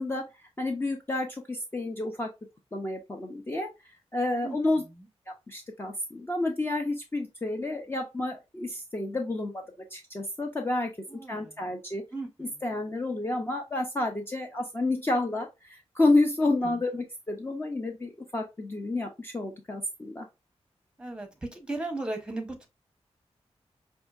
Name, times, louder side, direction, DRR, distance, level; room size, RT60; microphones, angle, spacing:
voice 1, 0.0-2.3 2.7-4.8 5.5-9.6 9.9-10.9 11.3-12.0 12.4-20.3, left 2 dB, 20° left, 0.5 m, -30 dB
voice 2, 11.1-11.6 12.1-12.6 16.6-16.8 21.0-22.7, right 2 dB, 10° right, 1.0 m, -36 dB
5.3 x 2.6 x 2.3 m
wide cardioid pair, 140°, 11 cm